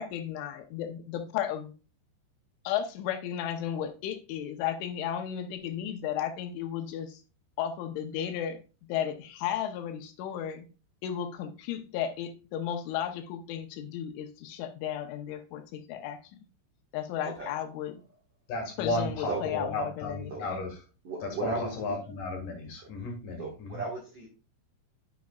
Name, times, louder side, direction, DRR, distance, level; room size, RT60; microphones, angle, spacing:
voice 1, 0.0-1.7 2.6-7.2 7.6-8.6 8.9-10.7 11.0-16.2 16.9-18.0 18.8-20.6, left 10 dB, 80° left, 3.2 m, -34 dB
voice 2, 18.5-20.8 21.2-23.8, left 2 dB, 55° left, 2.7 m, -34 dB
voice 3, 21.0-22.0 23.4-24.3, right 3 dB, 85° right, 1.3 m, -36 dB
9.4 x 6.3 x 2.3 m
omnidirectional pair, 5.6 m